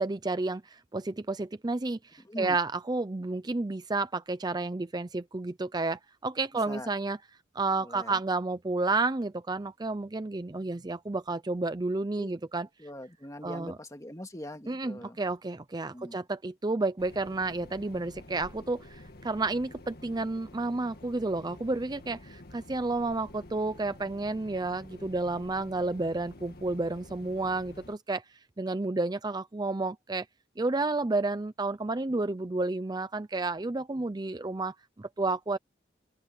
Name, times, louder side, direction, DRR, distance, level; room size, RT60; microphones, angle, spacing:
voice 1, 0.0-7.2 7.5-12.7 13.4-13.7 14.7-28.2 28.6-30.3 30.6-35.6, right 3 dB, 25° right, 0.5 m, -31 dB
voice 2, 2.2-2.6 6.7-6.9 7.8-8.2 12.2-12.4 12.8-15.2 15.9-16.2, left 1 dB, 20° left, 2.4 m, -42 dB
sound 1, 17.0-27.9, left 1 dB, 55° left, 1.9 m, -49 dB
open air
head